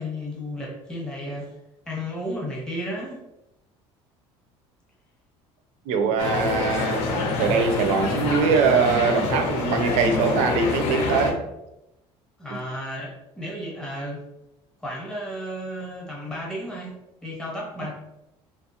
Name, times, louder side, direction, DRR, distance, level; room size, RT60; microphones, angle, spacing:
voice 1, 0.0-1.5 1.9-3.2 12.4-14.2 14.8-16.9 17.2-17.9, equal, 5° left, -3 dB, 0.7 m, -33 dB
voice 2, 5.9-7.1 7.4-11.4, right 5 dB, 75° right, 7 dB, 0.4 m, -22 dB
sound 1, 6.2-11.3, left 3 dB, 75° left, 0.6 m, -26 dB
2.8 x 2.3 x 2.8 m, 0.91 s
cardioid pair, 155°, 12 cm